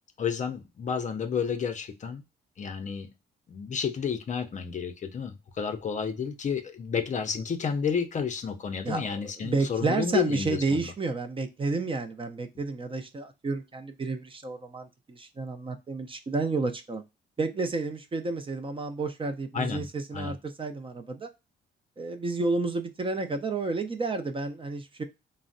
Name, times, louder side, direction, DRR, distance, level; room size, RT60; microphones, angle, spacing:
voice 1, 0.2-2.2 2.6-3.1 3.5-10.9 19.5-19.9 20.1-20.4, left 6 dB, 40° left, 6 dB, 0.5 m, -31 dB
voice 2, 9.4-17.0 17.4-21.3 22.0-25.0, right 3 dB, 25° right, 7 dB, 0.4 m, -31 dB
3.2 x 2.0 x 2.5 m, 0.24 s
cardioid pair, 90°, 20 cm